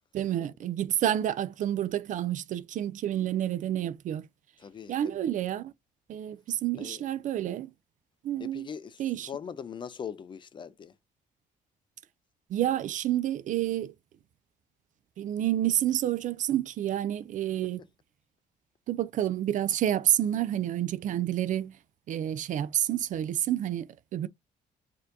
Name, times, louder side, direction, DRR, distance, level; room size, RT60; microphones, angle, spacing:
voice 1, 0.1-4.3 4.9-5.7 6.1-7.7 8.2-8.7 9.0-9.3 12.5-13.9 15.2-17.8 18.9-21.8 22.1-24.3, right 12 dB, 55° right, 0.4 m, -29 dB
voice 2, 4.6-5.2 6.8-7.0 8.4-11.0, left 7 dB, 30° left, 0.4 m, -41 dB
4.2 x 2.7 x 2.6 m
cardioid pair, 115°, 15 cm